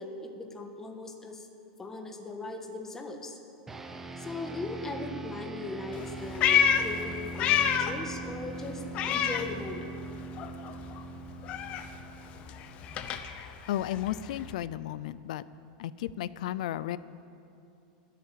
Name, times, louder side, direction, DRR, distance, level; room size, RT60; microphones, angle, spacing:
voice 1, 0.0-1.5 1.8-3.4 4.2-9.9, left 2 dB, 10° left, 3 dB, 1.4 m, -39 dB
sound 1, 3.7-13.3, right 2 dB, 10° right, 0.7 m, -42 dB
Meow, 5.9-8.1 8.4-10.1 10.4-14.5, left 8 dB, 30° left, 0.8 m, -29 dB
voice 2, 13.7-15.4 15.8-17.0, left 12 dB, 70° left, 17 dB, 0.5 m, -33 dB
22.0 x 8.5 x 7.6 m, 2.6 s
supercardioid pair, 165°, 4 cm